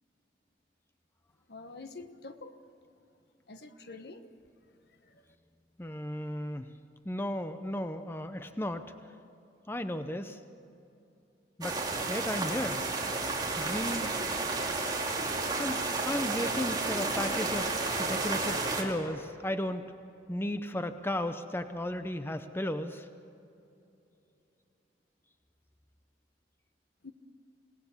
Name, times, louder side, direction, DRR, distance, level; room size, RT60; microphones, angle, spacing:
voice 1, 1.5-2.6 3.5-4.2 5.1-5.2 27.0-27.1, left 3 dB, 65° left, 8 dB, 1.3 m, -46 dB
voice 2, 5.8-6.7 7.0-8.9 9.7-10.4 11.6-11.8 12.1-12.8 13.6-14.1 15.6-19.8 20.3-23.1, left 1 dB, 15° left, 9 dB, 0.7 m, -34 dB
sound 1, 11.6-18.8, right 3 dB, 25° right, 2.8 m, -32 dB
26.5 x 18.0 x 7.2 m, 2.8 s
head